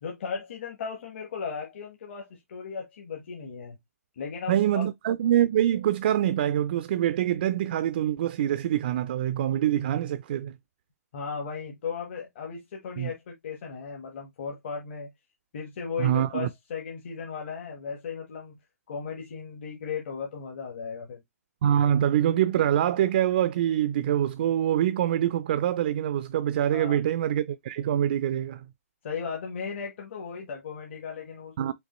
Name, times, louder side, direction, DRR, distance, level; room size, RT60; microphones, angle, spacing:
voice 1, 0.0-3.7 4.1-4.9 11.1-15.1 15.5-18.6 18.9-21.2 26.7-27.1 29.0-31.7, left 6 dB, 45° left, 1.2 m, -36 dB
voice 2, 4.5-10.6 13.0-13.1 16.0-16.5 21.6-28.7 31.6-31.7, right 11 dB, 40° right, 0.3 m, -25 dB
5.3 x 2.9 x 3.0 m
hypercardioid pair, 155°, 9 cm